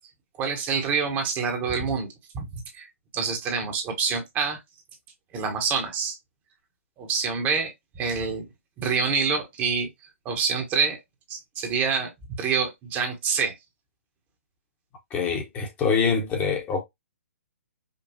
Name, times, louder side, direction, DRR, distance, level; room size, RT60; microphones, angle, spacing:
voice 1, 0.4-2.1 2.3-2.4 2.7-2.9 3.1-4.6 5.3-6.2 7.0-8.5 8.8-9.9 10.2-11.0 11.3-12.1 12.4-13.5, right 5 dB, 25° right, 1.1 m, -26 dB
voice 2, 15.1-16.8, left 5 dB, 20° left, 1.1 m, -25 dB
5.3 x 2.3 x 2.7 m
figure-of-eight pair, 130°, 7 cm